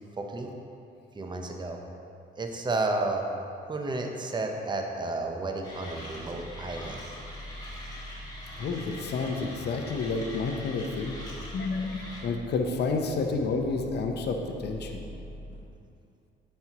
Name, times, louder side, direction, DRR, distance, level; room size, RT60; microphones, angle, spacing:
voice 1, 0.2-0.5 1.1-1.8 2.4-3.3 3.7-7.0, right 2 dB, 25° right, 2 dB, 0.7 m, -32 dB
Mechanisms, 5.6-12.2, left 1 dB, 20° left, 1.6 m, -44 dB
sound 1, 5.7-15.6, equal, 45° right, 1.4 m, -44 dB
voice 2, 8.6-11.1 11.5-15.0, left 4 dB, 55° left, 3 dB, 0.7 m, -30 dB
9.4 x 4.4 x 2.9 m, 2.6 s
cardioid pair, 90°, 20 cm